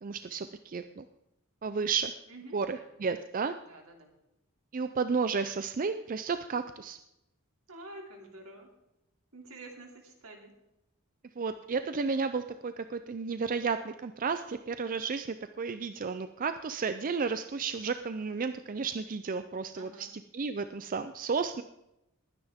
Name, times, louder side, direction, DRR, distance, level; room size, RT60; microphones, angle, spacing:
voice 1, 0.0-1.0 1.6-2.1 2.5-3.5 4.7-7.0 11.4-20.1 20.3-21.6, right 5 dB, 40° right, 10 dB, 0.5 m, -32 dB
voice 2, 2.3-2.8 3.6-4.1 7.7-8.7 9.3-10.6 19.7-20.1, right 2 dB, 80° right, 2 dB, 2.9 m, -48 dB
21.0 x 9.8 x 3.6 m, 0.87 s
head